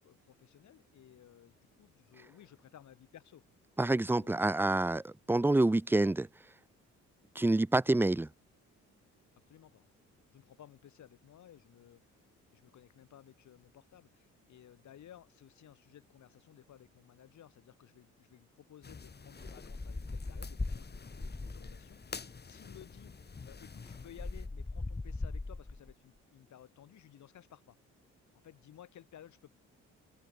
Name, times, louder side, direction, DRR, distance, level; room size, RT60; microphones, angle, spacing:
voice 1, 0.0-3.4 3.8-4.5 9.5-9.8 10.3-23.1 23.4-27.8 28.4-29.5, left 11 dB, 70° left, 6.8 m, -57 dB
voice 2, 3.8-6.3 7.4-8.3, right 2 dB, 5° right, 0.7 m, -27 dB
sound 1, 18.8-24.5, left 5 dB, 35° left, 4.5 m, -49 dB
sound 2, 19.4-21.9 22.9-23.0 23.3-25.9, left 3 dB, 15° left, 2.2 m, -40 dB
open air
cardioid pair, 90°, 30 cm